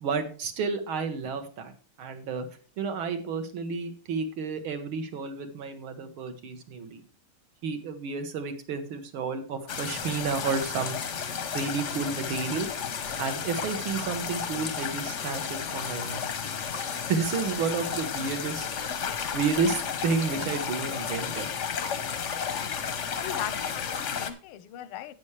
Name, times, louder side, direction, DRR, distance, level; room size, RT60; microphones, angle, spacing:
voice 1, 0.0-1.7 2.0-2.5 2.8-7.0 7.6-11.0 11.5-12.7 13.2-16.2 17.1-18.7 19.3-21.5, right 5 dB, 70° right, 8 dB, 2.0 m, -31 dB
sound 1, 9.7-24.3, left 7 dB, 55° left, 0.8 m, -33 dB
voice 2, 23.2-25.1, left 10 dB, 85° left, 15 dB, 1.6 m, -38 dB
11.5 x 8.7 x 3.2 m, 0.38 s
omnidirectional pair, 2.4 m